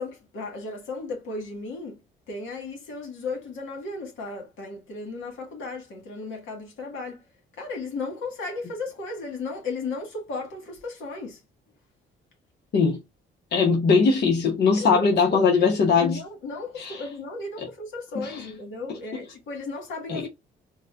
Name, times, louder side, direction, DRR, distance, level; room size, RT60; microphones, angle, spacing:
voice 1, 0.0-2.0 2.3-7.2 7.6-11.4 14.8-15.0 15.3-20.3, left 3 dB, 80° left, 1.5 m, -35 dB
voice 2, 13.5-16.2 16.8-17.0 17.6-17.7 18.2-18.4 19.1-19.2 20.1-20.2, left 5 dB, 55° left, 0.9 m, -21 dB
4.0 x 2.1 x 2.4 m
cardioid pair, 90°, 20 cm